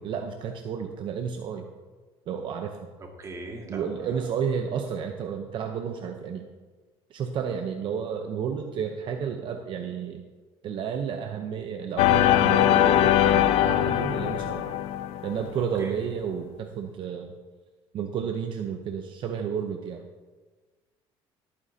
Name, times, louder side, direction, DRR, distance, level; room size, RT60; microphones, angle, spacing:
voice 1, 0.0-1.7 2.3-2.9 3.7-6.4 7.1-10.2 10.6-14.7 15.2-17.3 17.9-20.0, right 7 dB, 55° right, 4 dB, 0.8 m, -31 dB
voice 2, 3.0-4.2 13.8-14.1 15.8-16.0, right 2 dB, 30° right, 1 dB, 2.0 m, -40 dB
sound 1, 12.0-15.5, left 12 dB, 80° left, 0.5 m, -21 dB
17.5 x 8.9 x 2.8 m, 1.4 s
cardioid pair, 130°, 10 cm